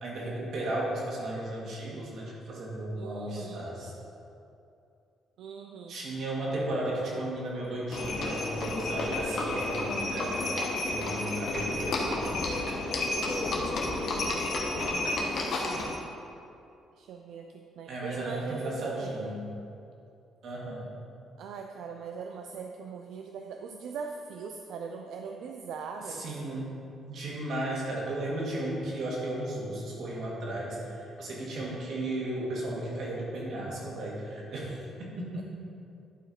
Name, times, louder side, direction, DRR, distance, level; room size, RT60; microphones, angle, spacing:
voice 1, 0.0-3.9 5.9-10.5 10.8-13.2 17.9-19.4 20.4-20.9 26.1-26.7 27.1-35.4, right 1 dB, 55° right, -4 dB, 2.1 m, -35 dB
voice 2, 2.9-3.7 5.4-6.0 14.1-16.1 17.0-19.3 21.4-26.2, right 5 dB, 80° right, 3 dB, 0.4 m, -41 dB
Livestock farm animals working animals, 7.9-16.0, left 2 dB, 50° left, 1.1 m, -31 dB
11.5 x 4.7 x 4.5 m, 2.7 s
cardioid pair, 155°, 0 cm